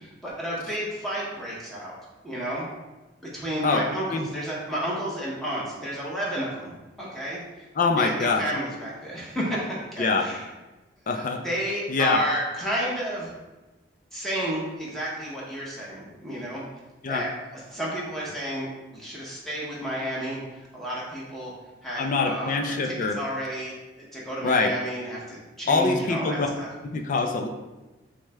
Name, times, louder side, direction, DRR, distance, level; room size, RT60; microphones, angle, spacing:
voice 1, 0.0-2.0 2.2-2.7 3.3-7.4 8.0-10.5 11.1-13.3 14.1-16.6 17.1-21.5 21.8-26.7, equal, ahead, -6 dB, 0.8 m, -31 dB
voice 2, 7.8-8.4 10.0-10.2 11.1-11.4 11.9-12.2 17.0-17.2 22.0-23.2 24.4-24.7 25.7-26.5 26.8-27.5, left 4 dB, 40° left, 3 dB, 0.4 m, -24 dB
6.2 x 2.2 x 3.4 m, 1.1 s
head